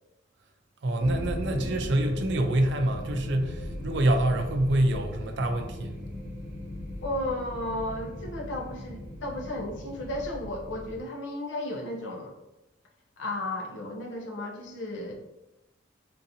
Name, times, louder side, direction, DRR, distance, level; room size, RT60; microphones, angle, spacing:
voice 1, 0.8-5.9, right 1 dB, 65° right, 6 dB, 0.4 m, -26 dB
sound 1, 1.0-11.0, left 1 dB, 15° right, 0.8 m, -37 dB
voice 2, 7.0-12.3 13.2-15.1, left 1 dB, 70° left, 0 dB, 0.7 m, -34 dB
3.7 x 2.7 x 2.7 m, 0.96 s
head